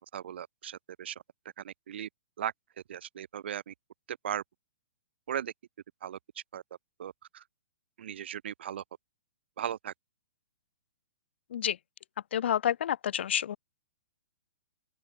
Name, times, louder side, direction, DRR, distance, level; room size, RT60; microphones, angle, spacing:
voice 1, 0.1-1.2 1.6-2.1 2.4-2.5 2.9-3.7 4.1-4.4 5.3-5.5 6.0-6.2 6.5-6.6 7.0-7.4 8.0-8.8 9.6-9.9, right 10 dB, 65° right, 1.6 m, -37 dB
voice 2, 12.3-13.6, left 10 dB, 65° left, 0.6 m, -29 dB
open air
hypercardioid pair, 130°, 6 cm